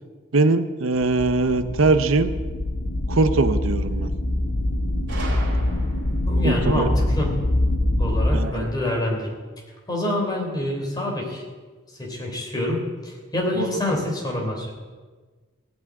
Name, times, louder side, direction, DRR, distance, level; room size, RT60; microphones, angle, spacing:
voice 1, 0.3-2.3 3.1-4.1 6.4-6.9 8.3-8.7 13.6-13.8, right 3 dB, 85° right, 10 dB, 0.8 m, -21 dB
sound 1, 1.0-8.3, left 1 dB, 80° left, 1.4 m, -24 dB
Gunshot gunfire, 5.1-6.3, right 2 dB, 60° right, 3.6 m, -36 dB
voice 2, 6.1-7.3 8.0-9.3 9.9-11.4 12.0-14.7, left 1 dB, 20° left, -1 dB, 3.4 m, -26 dB
17.0 x 6.2 x 9.2 m, 1.4 s
head